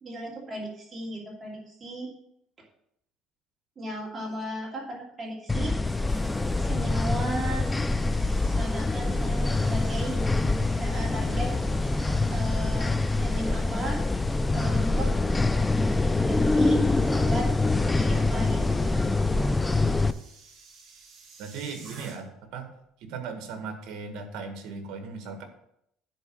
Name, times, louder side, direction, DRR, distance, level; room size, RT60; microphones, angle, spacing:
voice 1, 0.0-2.1 3.8-6.1 6.6-7.7 8.5-10.2 10.6-11.5 12.3-14.0 14.5-15.1 16.2-16.9 17.1-17.5 17.8-18.8, right 1 dB, 20° right, -3 dB, 2.8 m, -35 dB
sound 1, 5.5-20.1, left 2 dB, 10° left, 0.4 m, -25 dB
sound 2, 5.7-22.5 22.8-23.1, right 4 dB, 45° right, 2.4 m, -53 dB
voice 2, 21.4-22.7 23.0-25.4, right 5 dB, 65° right, 5 dB, 1.7 m, -37 dB
10.0 x 4.1 x 6.2 m, 0.76 s
cardioid pair, 150°, 0 cm